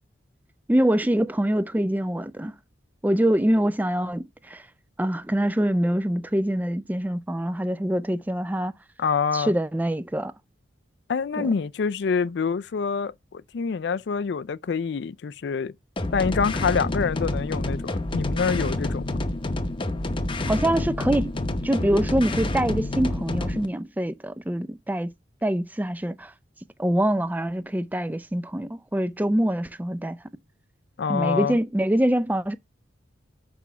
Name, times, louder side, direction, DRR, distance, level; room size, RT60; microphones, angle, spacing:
voice 1, 0.7-2.5 3.0-4.6 5.0-8.7 9.3-10.3 11.4-11.5 20.5-21.3 21.6-25.1 25.4-26.3 26.8-30.2 31.1-32.6, right 1 dB, 10° right, 0.4 m, -24 dB
voice 2, 9.0-9.5 11.1-15.7 16.1-19.0 31.0-31.6, left 5 dB, 65° left, 0.4 m, -26 dB
sound 1, 16.0-23.7, left 1 dB, 25° left, 0.8 m, -28 dB
6.1 x 5.9 x 5.5 m
head